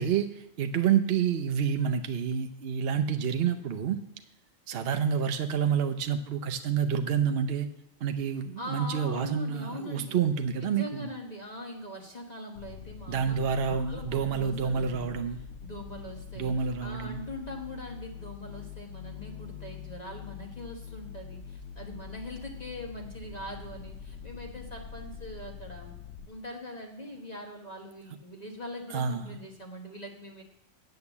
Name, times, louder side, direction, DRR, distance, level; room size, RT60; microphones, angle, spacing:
voice 1, 0.0-4.0 4.7-7.7 8.0-11.1 13.1-15.4 16.3-17.2 28.9-29.4, right 7 dB, 60° right, 7 dB, 0.8 m, -28 dB
voice 2, 8.6-10.2 10.6-15.2 15.6-25.9 26.2-30.4, left 1 dB, 30° left, 0 dB, 1.3 m, -42 dB
sound 1, 12.5-26.3, left 7 dB, 60° left, 0.9 m, -44 dB
8.6 x 7.9 x 7.0 m, 0.79 s
omnidirectional pair, 1.4 m